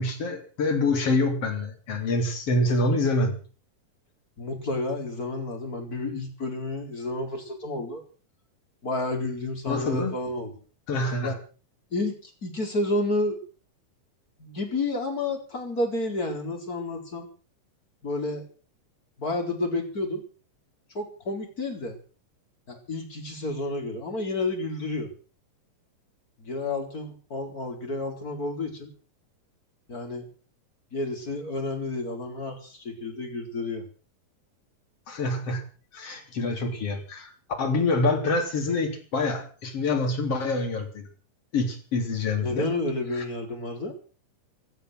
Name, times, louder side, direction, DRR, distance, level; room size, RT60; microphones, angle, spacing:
voice 1, 0.0-3.4 9.7-10.1 10.9-11.3 35.1-35.6 35.9-37.3 37.6-41.1 41.5-42.7 43.2-43.3, left 2 dB, 45° left, 4 dB, 4.5 m, -26 dB
voice 2, 4.4-8.0 8.8-10.5 11.2-11.4 11.9-13.4 14.4-17.3 18.0-18.4 19.2-20.2 20.9-22.0 22.7-25.1 26.4-28.9 29.9-30.2 30.9-33.8 42.4-43.9, left 2 dB, 25° left, 3 dB, 4.5 m, -30 dB
17.5 x 12.5 x 6.4 m, 0.39 s
omnidirectional pair, 3.9 m